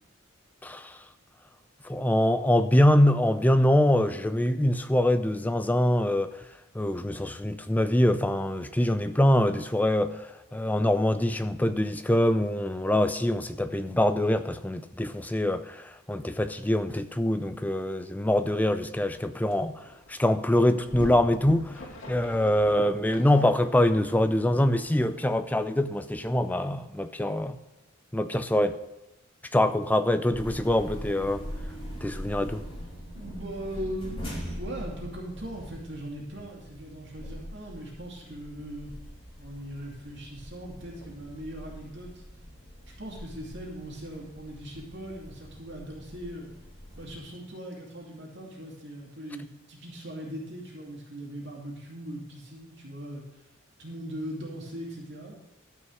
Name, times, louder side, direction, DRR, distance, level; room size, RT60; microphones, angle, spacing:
voice 1, 0.6-1.0 1.8-6.3 6.7-19.8 20.1-21.7 22.1-27.6 28.1-28.8 29.5-31.4 32.0-32.6, left 1 dB, 10° left, 0.4 m, -24 dB
sound 1, 19.2-19.3 19.5-25.7, left 1 dB, 70° left, 2.5 m, -44 dB
sound 2, 30.3-47.2, equal, 25° left, 3.1 m, -42 dB
voice 2, 33.1-38.9 39.4-42.1 43.0-46.5 46.9-53.2 53.8-55.4, equal, 60° right, 2.5 m, -40 dB
13.0 x 5.4 x 6.3 m
head